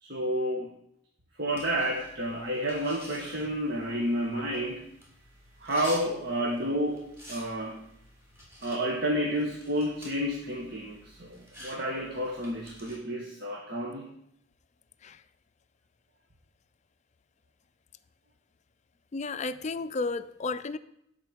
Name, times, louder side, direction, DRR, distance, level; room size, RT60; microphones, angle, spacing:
voice 1, 0.0-0.7 1.4-4.8 5.6-7.9 8.6-14.1, equal, 55° right, -1 dB, 1.4 m, -30 dB
sound 1, 1.5-13.0, equal, 15° right, 3.3 m, -50 dB
voice 2, 19.1-20.8, left 3 dB, 35° left, 12 dB, 0.4 m, -33 dB
11.5 x 4.4 x 8.0 m, 0.76 s
head